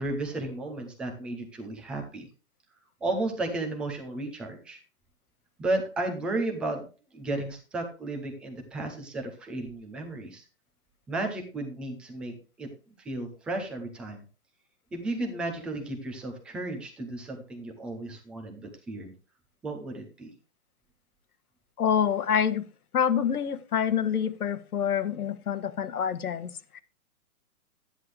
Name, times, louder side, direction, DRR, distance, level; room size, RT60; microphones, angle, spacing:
voice 1, 0.0-2.3 3.0-4.8 5.6-6.8 7.1-10.5 11.1-12.7 13.0-14.2 14.9-19.1 19.6-20.3, right 2 dB, ahead, 0.4 m, -33 dB
voice 2, 21.8-22.6 22.9-26.8, left 8 dB, 90° left, 1.4 m, -27 dB
12.5 x 9.6 x 3.2 m
hypercardioid pair, 155°, 43 cm